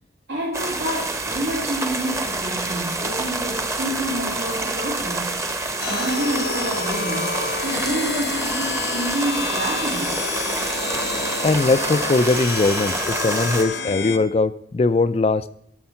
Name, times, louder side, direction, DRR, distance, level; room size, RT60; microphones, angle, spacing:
voice 1, 0.3-7.4 7.6-10.2, right 1 dB, 80° right, -4 dB, 2.3 m, -28 dB
sound 1, 0.5-13.6, right 2 dB, 15° right, 0.8 m, -27 dB
sound 2, 5.8-14.2, left 4 dB, 75° left, 1.0 m, -29 dB
voice 2, 11.4-15.5, left 3 dB, 35° left, 13 dB, 0.4 m, -20 dB
12.5 x 6.5 x 5.7 m, 0.69 s
head